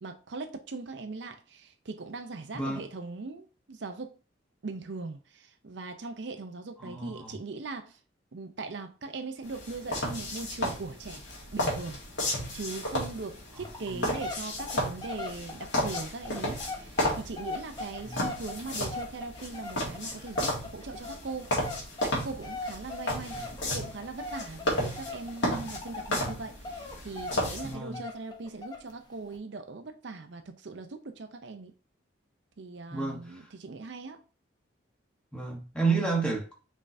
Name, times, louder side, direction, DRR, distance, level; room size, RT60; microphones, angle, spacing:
voice 1, 0.0-4.1 4.6-7.9 8.3-11.2 11.5-12.0 12.5-21.5 22.0-23.4 23.6-31.7 32.6-34.2, right 3 dB, 65° right, 0.6 m, -40 dB
voice 2, 2.5-2.8 6.8-7.4 13.9-14.1 18.0-18.2 23.3-23.5 27.6-28.0 32.9-33.2 35.3-36.5, right 4 dB, 5° left, 1.1 m, -31 dB
sound 1, 9.4-27.7, left 1 dB, 70° left, 2.1 m, -34 dB
sound 2, 10.8-11.0 11.3-11.4 11.7-11.8 12.4-12.5 13.1-13.2 13.6-26.4 26.6-28.9 29.3-29.4, left 3 dB, 20° left, 0.7 m, -41 dB
5.3 x 3.7 x 2.6 m
head